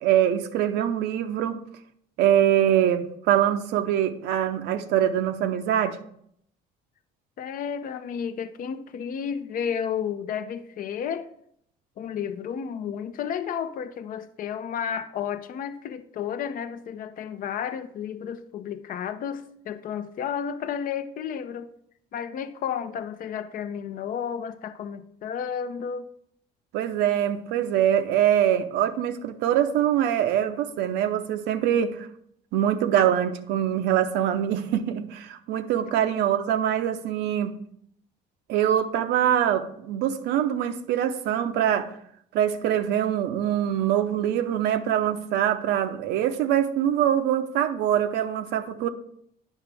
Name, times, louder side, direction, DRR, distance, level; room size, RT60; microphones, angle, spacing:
voice 1, 0.0-1.6 2.2-6.0 26.7-32.1 32.5-37.5 38.5-41.9 42.3-48.9, right 10 dB, 85° right, 9 dB, 0.7 m, -24 dB
voice 2, 7.4-11.3 12.0-21.7 22.1-26.1 35.8-35.9, left 8 dB, 55° left, 11 dB, 0.6 m, -32 dB
9.2 x 5.9 x 3.4 m, 0.70 s
cardioid pair, 110°, 17 cm